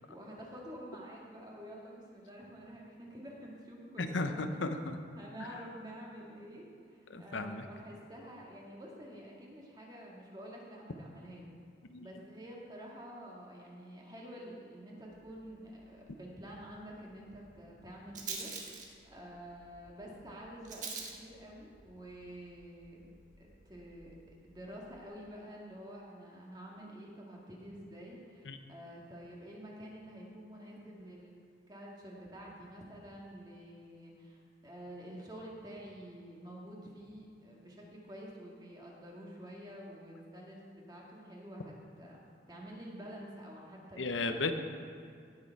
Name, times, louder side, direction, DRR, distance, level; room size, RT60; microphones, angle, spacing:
voice 1, 0.0-4.4 5.1-11.5 12.0-23.1 23.4-24.2 24.4-42.2 42.5-44.5, equal, 20° right, -3 dB, 1.9 m, -49 dB
voice 2, 4.0-5.0 7.1-7.6 11.9-12.1 28.5-28.6 44.0-44.5, left 3 dB, 85° left, 7 dB, 0.8 m, -34 dB
Rattle, 15.1-25.0, right 5 dB, 40° right, 1.5 m, -49 dB
17.5 x 6.7 x 4.7 m, 2.3 s
head